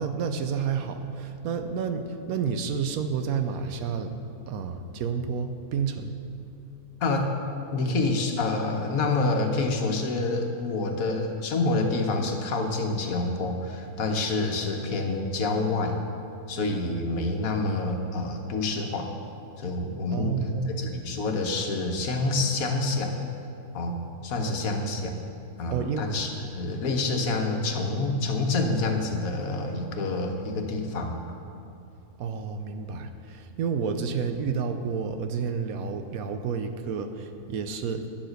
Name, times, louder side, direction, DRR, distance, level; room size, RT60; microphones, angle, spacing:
voice 1, 0.0-4.2 4.5-6.2 20.1-20.9 24.4-24.5 25.7-26.1 32.2-38.1, right 6 dB, 75° right, 7 dB, 1.2 m, -30 dB
voice 2, 7.0-7.3 7.7-16.0 16.5-19.1 19.6-20.4 20.8-23.2 23.7-24.0 24.2-25.1 25.6-31.2, left 3 dB, 75° left, 3 dB, 1.4 m, -27 dB
10.0 x 7.3 x 6.5 m, 2.6 s
omnidirectional pair, 1.5 m